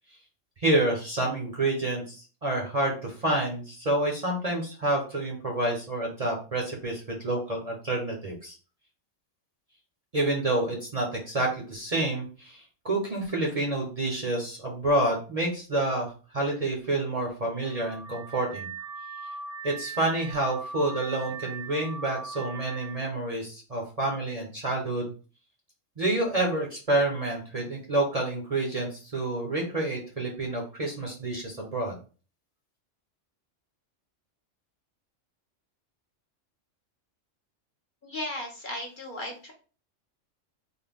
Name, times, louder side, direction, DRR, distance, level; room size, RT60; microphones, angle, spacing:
voice 1, 0.6-8.6 10.1-18.7 19.6-25.1 26.0-32.0, right 2 dB, 35° right, -1 dB, 0.7 m, -28 dB
Car / Alarm, 17.6-23.1, right 5 dB, 90° right, 1.4 m, -40 dB
voice 2, 38.0-39.5, left 1 dB, 45° left, 0 dB, 0.9 m, -35 dB
3.7 x 2.1 x 3.5 m, 0.37 s
omnidirectional pair, 1.3 m